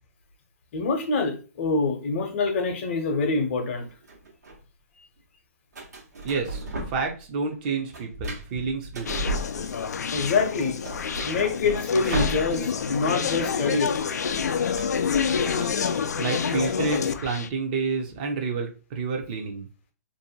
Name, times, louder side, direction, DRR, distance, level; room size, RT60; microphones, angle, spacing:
voice 1, 0.7-3.9 10.1-10.8 11.2-13.9, left 4 dB, 45° left, 5 dB, 0.7 m, -25 dB
sound 1, 3.8-4.6 5.7-7.2 7.5-10.0 10.4-10.5 10.7-12.9 13.2-13.4 13.6-15.7, right 1 dB, 80° right, 1.1 m, -35 dB
voice 2, 6.2-9.1 16.1-19.7, right 4 dB, 30° right, 3 dB, 0.5 m, -29 dB
Conversation, 9.1-17.5, left 6 dB, 80° left, 0.4 m, -28 dB
2.6 x 2.1 x 2.8 m, 0.35 s
hypercardioid pair, 150°, 9 cm